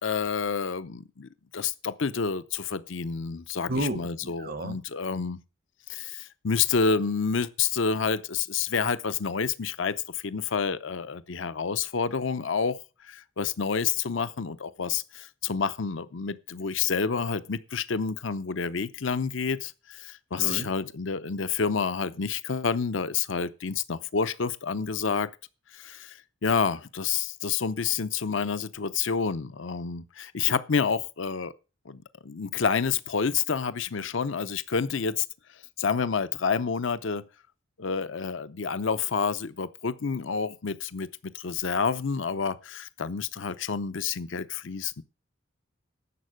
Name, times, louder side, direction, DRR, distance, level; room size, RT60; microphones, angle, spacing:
voice 1, 0.0-5.4 5.9-12.8 13.0-25.3 25.7-31.5 31.9-35.2 35.8-37.2 37.8-41.1 41.3-45.0, left 5 dB, 70° left, 0.7 m, -29 dB
voice 2, 3.7-4.1 4.4-4.8 20.4-20.7, right 1 dB, 50° right, 0.9 m, -30 dB
11.0 x 7.5 x 6.3 m
head